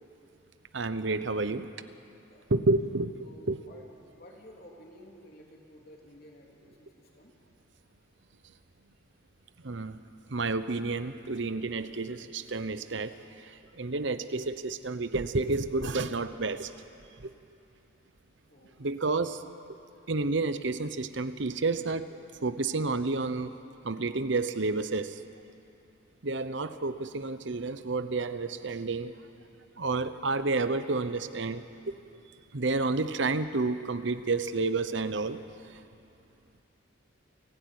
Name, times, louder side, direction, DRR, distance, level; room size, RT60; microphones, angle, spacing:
voice 1, 0.7-1.7 2.5-3.6 9.6-10.0 10.3-13.2 13.4-16.7 17.2-17.3 18.8-19.4 20.1-22.1 22.4-23.6 23.8-25.2 26.2-29.1 29.8-31.6 32.5-35.4, right 3 dB, 65° right, 11 dB, 0.9 m, -30 dB
voice 2, 3.2-3.9 4.2-7.3 18.5-18.7 26.6-27.0, equal, 50° left, -1 dB, 3.6 m, -53 dB
28.5 x 16.0 x 9.6 m, 2.7 s
head